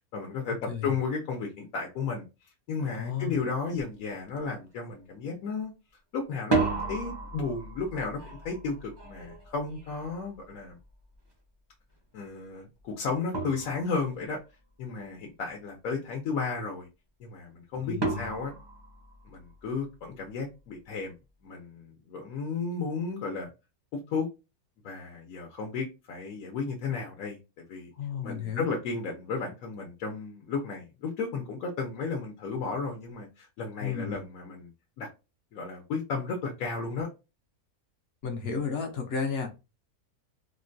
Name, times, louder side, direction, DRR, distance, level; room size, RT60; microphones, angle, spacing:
voice 1, 0.1-2.3 2.7-5.7 6.1-10.8 12.1-14.4 14.8-16.9 17.2-18.5 19.3-21.1 21.4-23.5 23.9-24.3 24.8-27.4 27.7-27.9 28.2-34.7 35.0-35.1 35.5-37.1, left 4 dB, 70° left, 1 dB, 1.1 m, -33 dB
voice 2, 2.9-3.4 17.9-18.2 28.0-28.7 33.8-34.2 38.2-39.6, left 6 dB, 55° left, 4 dB, 0.7 m, -33 dB
sound 1, 3.8-3.9 4.3-4.8 6.3-11.2 12.8-12.9 13.3-14.3 18.0-19.7, right 3 dB, 30° right, 0.4 m, -34 dB
3.7 x 2.1 x 2.5 m, 0.27 s
omnidirectional pair, 1.6 m